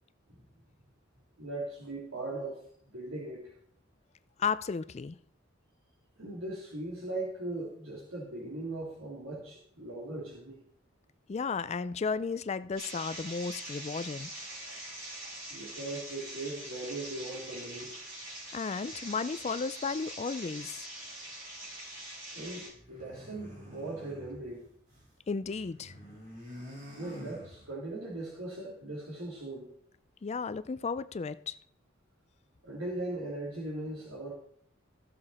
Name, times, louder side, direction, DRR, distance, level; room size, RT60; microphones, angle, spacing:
voice 1, 1.4-2.6 2.9-3.5 6.2-10.6 15.5-17.9 22.3-24.7 27.0-29.7 32.6-34.3, right 2 dB, 90° right, -5 dB, 3.1 m, -39 dB
voice 2, 4.4-5.2 11.3-14.3 18.5-20.9 25.3-25.9 30.2-31.6, left 5 dB, 30° left, 15 dB, 0.3 m, -34 dB
sound 1, 12.8-22.7, right 1 dB, 65° right, 5.6 m, -43 dB
sound 2, 22.7-25.1 25.4-28.0, equal, 40° right, 4.3 m, -48 dB
15.0 x 6.9 x 4.2 m, 0.63 s
head